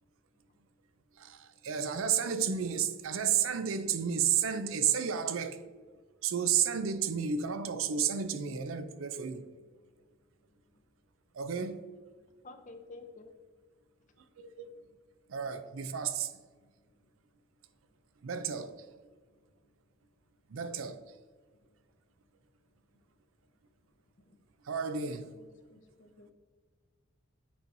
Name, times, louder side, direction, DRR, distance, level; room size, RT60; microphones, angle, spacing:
voice 1, 1.2-5.6 6.2-9.4 11.4-11.8 14.4-14.7 15.3-16.3 18.2-18.7 20.5-21.0 24.7-25.3, right 7 dB, 80° right, 0.5 m, -31 dB
voice 2, 12.1-13.3 14.9-15.0 16.9-17.0 19.3-19.5 21.5-21.8 24.2-24.4 26.0-26.1, left 3 dB, 35° left, 0.5 m, -52 dB
voice 3, 25.3-26.3, left 2 dB, 70° left, 0.8 m, -61 dB
8.3 x 4.6 x 2.6 m
head